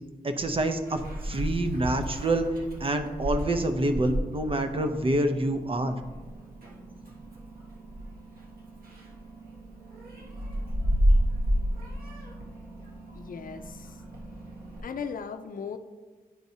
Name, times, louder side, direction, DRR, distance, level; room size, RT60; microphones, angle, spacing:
voice 1, 0.2-2.5 2.8-5.9, right 1 dB, 35° right, 7 dB, 0.7 m, -27 dB
Meow, 0.8-14.8, equal, 75° right, 1.4 m, -32 dB
voice 2, 13.1-13.9 14.8-15.8, left 6 dB, 65° left, 8 dB, 0.6 m, -37 dB
10.5 x 4.6 x 2.8 m, 1.3 s
cardioid pair, 80°, 15 cm